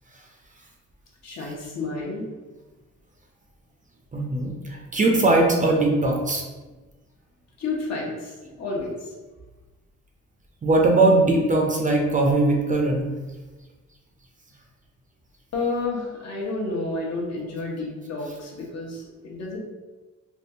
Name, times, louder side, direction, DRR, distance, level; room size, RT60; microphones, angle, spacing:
voice 1, 1.2-2.3 7.6-9.1 15.5-19.6, left 3 dB, 60° left, -3 dB, 1.0 m, -30 dB
voice 2, 4.1-6.4 10.6-13.1, right 2 dB, 25° right, 0 dB, 0.5 m, -20 dB
3.6 x 2.3 x 2.7 m, 1.2 s
cardioid pair, 90°, 30 cm